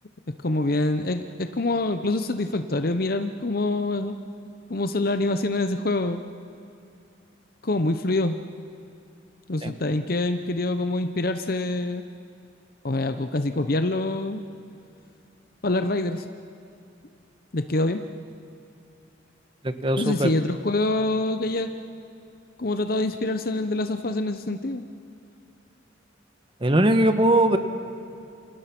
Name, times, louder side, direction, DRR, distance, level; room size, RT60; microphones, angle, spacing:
voice 1, 0.4-4.1 4.7-6.2 7.6-8.4 9.5-12.0 12.8-14.4 15.6-16.2 17.5-18.0 20.0-21.7 22.6-24.8, left 2 dB, 50° left, 9 dB, 0.9 m, -25 dB
voice 2, 19.6-20.3 26.6-27.6, right 1 dB, 25° right, 8 dB, 1.3 m, -20 dB
29.0 x 27.0 x 6.1 m, 2.6 s
head